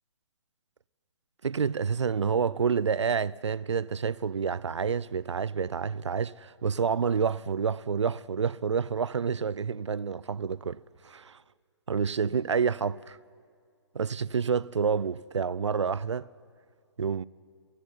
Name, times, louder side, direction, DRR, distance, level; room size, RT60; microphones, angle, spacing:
voice 1, 1.4-11.4 11.9-13.2 13.9-16.3 17.0-17.3, right 6 dB, 85° right, 0.5 m, -28 dB
29.0 x 11.5 x 9.9 m
figure-of-eight pair, 135°, 15 cm